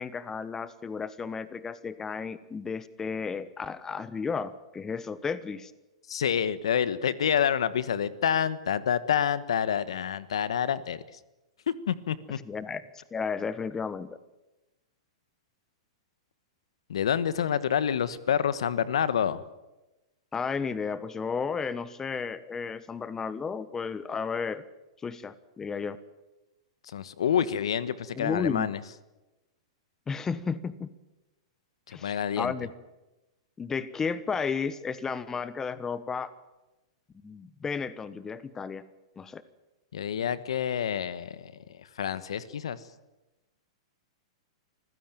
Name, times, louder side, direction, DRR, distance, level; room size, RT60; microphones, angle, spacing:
voice 1, 0.0-5.7 12.5-12.8 13.1-14.2 20.3-24.6 25.0-26.0 28.1-28.7 30.1-30.9 31.9-32.7 33.6-36.3 37.2-38.8 39.2-39.4, left 5 dB, 15° left, 16 dB, 1.2 m, -33 dB
voice 2, 6.1-11.0 11.7-12.4 16.9-19.4 26.8-28.8 31.9-32.5 39.9-42.8, left 8 dB, 75° left, 16 dB, 1.3 m, -28 dB
26.0 x 15.5 x 9.2 m, 1.0 s
hypercardioid pair, 110°, 3 cm